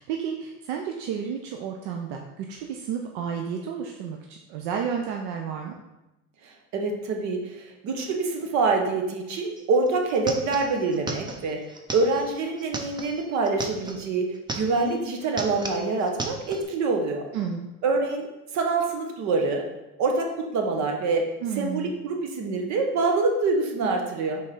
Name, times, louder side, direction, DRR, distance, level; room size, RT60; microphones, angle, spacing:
voice 1, 0.0-5.7 17.3-17.7 21.4-21.9, right 7 dB, 85° right, 2 dB, 0.7 m, -31 dB
voice 2, 6.4-11.6 11.9-17.2 17.8-18.3 18.5-19.6 20.0-21.2 21.5-24.4, right 3 dB, 65° right, 3 dB, 1.3 m, -25 dB
sound 1, 9.6-9.7 9.9-14.0 14.4-15.0 15.2-16.6, right 2 dB, 15° right, 0.6 m, -35 dB
5.4 x 3.8 x 5.4 m, 0.98 s
cardioid pair, 140°, 31 cm